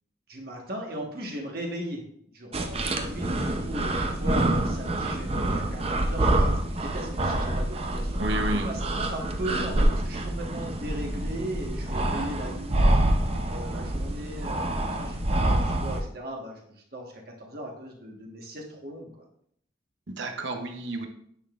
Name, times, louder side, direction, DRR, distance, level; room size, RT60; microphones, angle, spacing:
voice 1, 0.3-2.0 2.3-8.2 8.6-19.2, right 1 dB, 50° right, 0 dB, 1.4 m, -38 dB
sound 1, 2.5-16.0, right 1 dB, 30° right, 0.6 m, -26 dB
voice 2, 8.2-8.7 20.1-21.1, right 1 dB, 70° right, 5 dB, 0.9 m, -31 dB
9.9 x 6.0 x 2.5 m, 0.69 s
head